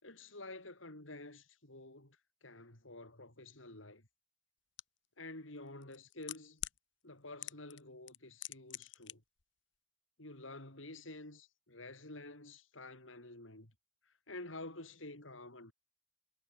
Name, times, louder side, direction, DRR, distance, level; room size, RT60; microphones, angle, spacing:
voice 1, 0.0-4.1 5.2-6.6 7.0-9.2 10.2-13.7 14.1-15.7, left 2 dB, 85° left, 6.0 m, -50 dB
sound 1, 4.8-4.9 5.8-6.8 7.4-7.8 8.1-9.1 9.4-9.5, left 14 dB, 70° left, 1.1 m, -43 dB
head